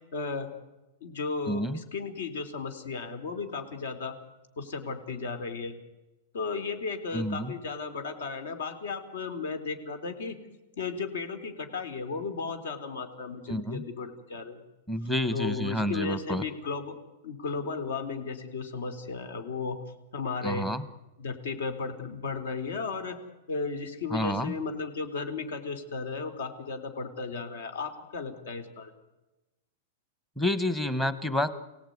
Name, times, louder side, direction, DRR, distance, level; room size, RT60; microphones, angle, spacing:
voice 1, 0.1-0.5 1.0-4.2 4.6-5.7 6.3-10.4 10.8-14.6 15.3-17.0 17.2-19.8 20.1-20.7 21.2-23.2 23.5-28.9, left 4 dB, 70° left, 9 dB, 3.8 m, -35 dB
voice 2, 1.5-1.8 7.1-7.5 13.5-13.8 14.9-16.4 20.4-20.8 24.1-24.6 30.4-31.5, left 1 dB, 5° left, 13 dB, 1.0 m, -29 dB
29.0 x 18.0 x 9.5 m, 1.1 s
supercardioid pair, 175°, 0 cm